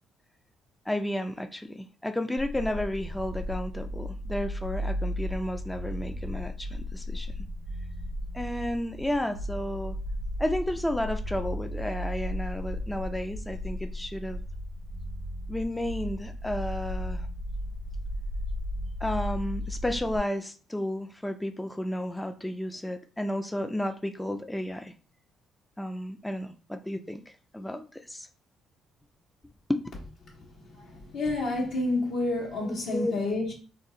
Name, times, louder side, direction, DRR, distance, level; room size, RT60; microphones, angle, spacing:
voice 1, 0.9-7.3 8.3-10.0 10.4-14.4 15.5-17.3 19.0-24.9 25.8-28.3 29.7-29.8 32.6-33.4, left 1 dB, 10° left, 0.3 m, -32 dB
sound 1, 2.4-20.2, equal, 75° right, 0.6 m, -35 dB
voice 2, 30.7-33.5, left 2 dB, 70° left, 1.1 m, -29 dB
2.5 x 2.0 x 3.7 m
cardioid pair, 80°, 0 cm